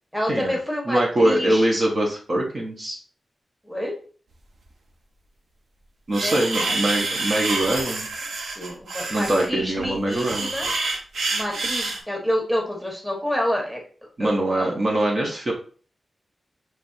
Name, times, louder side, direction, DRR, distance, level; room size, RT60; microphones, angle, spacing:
voice 1, 0.1-1.7 3.6-4.0 6.1-6.9 8.4-10.7 11.3-13.8 14.2-14.7, equal, ahead, -1 dB, 1.3 m, -28 dB
voice 2, 0.9-3.0 6.1-8.1 9.1-10.5 14.2-15.5, right 1 dB, 40° right, -2 dB, 0.9 m, -23 dB
sound 1, 6.1-12.0, right 3 dB, 85° right, 0.8 m, -27 dB
5.3 x 3.2 x 2.6 m, 0.41 s
wide cardioid pair, 135°, 0 cm